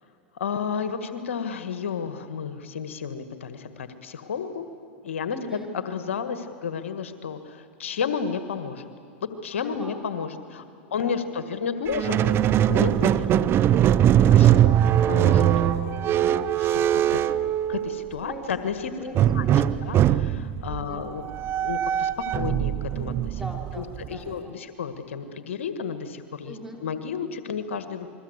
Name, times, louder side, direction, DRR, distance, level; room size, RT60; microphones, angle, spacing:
voice 1, 0.4-4.7 5.0-8.9 9.4-10.6 10.9-13.5 14.3-16.2 16.5-17.4 17.7-18.9 19.4-19.5 19.8-23.4 23.7-26.6 26.8-28.1, left 6 dB, 85° left, 9 dB, 1.7 m, -32 dB
voice 2, 5.3-5.7 9.6-10.0 10.9-11.5 13.0-13.5 18.2-18.5 19.0-19.7 20.7-21.0 23.3-24.5 26.4-26.8, right 1 dB, 5° right, 0 dB, 5.1 m, -41 dB
Squeak, 11.9-18.2 19.1-24.3, right 11 dB, 35° right, 0.8 m, -21 dB
29.0 x 22.0 x 8.1 m, 2.7 s
hypercardioid pair, 105°, 7 cm